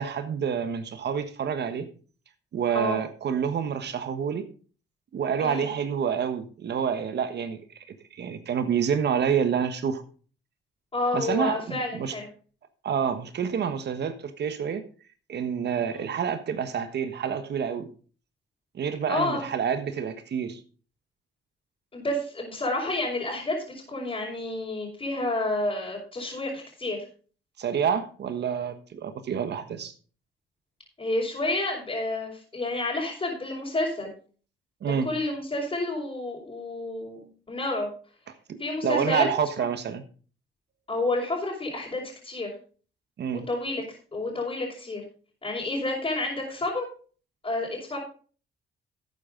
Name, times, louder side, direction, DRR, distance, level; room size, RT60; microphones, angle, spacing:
voice 1, 0.0-1.9 2.5-4.4 5.1-7.6 8.1-10.0 11.1-12.1 12.8-14.8 15.3-17.9 18.7-20.6 27.6-29.9 34.8-35.1 38.5-38.6 38.8-40.0 43.2-43.4, right 7 dB, 60° right, 10 dB, 1.4 m, -28 dB
voice 2, 10.9-12.3 15.9-16.1 19.1-19.4 21.9-27.0 31.0-34.1 34.8-37.9 38.6-39.3 40.9-42.5 43.3-45.0 45.4-46.8 47.4-48.0, left 2 dB, 25° left, -6 dB, 4.8 m, -30 dB
12.0 x 9.1 x 3.8 m, 0.40 s
cardioid pair, 90°, 20 cm